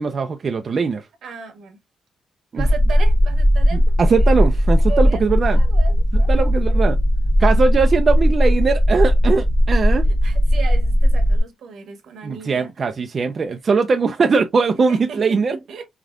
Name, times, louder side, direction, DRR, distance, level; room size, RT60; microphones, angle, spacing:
voice 1, 0.0-1.1 2.5-2.7 3.7-5.6 6.3-7.0 7.4-10.1 12.2-15.6, right 4 dB, 45° right, 0.4 m, -20 dB
voice 2, 1.2-1.8 2.5-4.4 4.8-5.2 5.5-6.8 10.0-12.7 14.9-15.9, right 5 dB, 80° right, 1.1 m, -36 dB
sound 1, 2.6-11.4, equal, 25° left, 1.3 m, -17 dB
3.7 x 3.4 x 2.4 m
cardioid pair, 95°, 0 cm